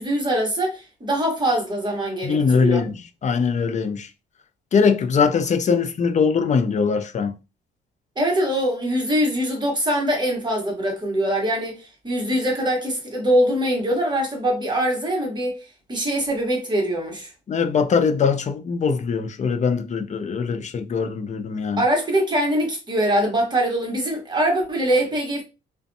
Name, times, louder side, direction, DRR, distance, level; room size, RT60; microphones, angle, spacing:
voice 1, 0.0-2.8 8.2-15.5 15.9-17.3 21.8-25.4, right 1 dB, 20° right, 1.1 m, -23 dB
voice 2, 2.2-2.9 3.2-4.1 4.7-7.4 17.5-21.8, left 5 dB, 35° left, 0.5 m, -21 dB
2.5 x 2.2 x 2.6 m
cardioid pair, 90°, 20 cm